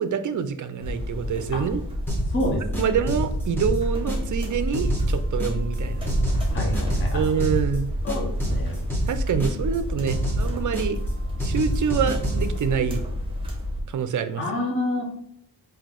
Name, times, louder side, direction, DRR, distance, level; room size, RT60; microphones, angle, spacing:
voice 1, 0.0-1.8 2.8-6.1 7.1-7.9 9.0-11.0 11.4-13.0 13.9-14.4, right 7 dB, 45° right, 10 dB, 0.5 m, -26 dB
sound 1, 0.8-13.8, equal, 15° right, 1.1 m, -29 dB
sound 2, 2.1-2.4 2.7-4.4 4.7-5.8 6.1-7.8 8.1-9.8 10.1-11.1 11.4-12.6, right 1 dB, 5° left, 1.3 m, -28 dB
voice 2, 2.3-2.9 6.5-7.2 8.0-8.8 14.4-15.1, left 1 dB, 30° left, 0 dB, 0.9 m, -28 dB
3.8 x 2.7 x 3.7 m, 0.70 s
wide cardioid pair, 115°, 42 cm